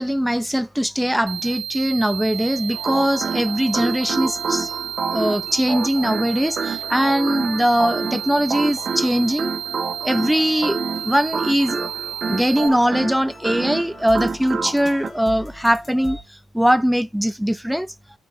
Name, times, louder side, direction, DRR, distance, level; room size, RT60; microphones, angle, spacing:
voice 1, 0.0-4.7 5.1-9.5 10.0-11.8 12.3-17.9, equal, ahead, 0.3 m, -21 dB
sound 1, 1.3-12.7, right 10 dB, 85° right, 0.5 m, -32 dB
sound 2, 2.0-16.2, left 2 dB, 35° left, 2.4 m, -43 dB
sound 3, 2.7-15.1, right 5 dB, 45° right, 1.4 m, -29 dB
9.2 x 5.9 x 3.1 m
cardioid pair, 90°, 0 cm